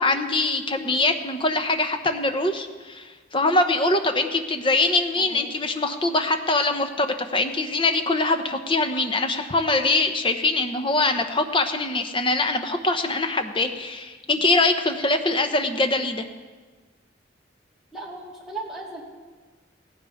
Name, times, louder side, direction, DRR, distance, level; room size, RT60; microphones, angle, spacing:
voice 1, 0.0-16.2, left 2 dB, 25° left, 6 dB, 0.9 m, -23 dB
voice 2, 5.2-5.5 17.9-19.0, right 3 dB, ahead, -6 dB, 2.5 m, -36 dB
17.5 x 15.5 x 3.6 m, 1.4 s
head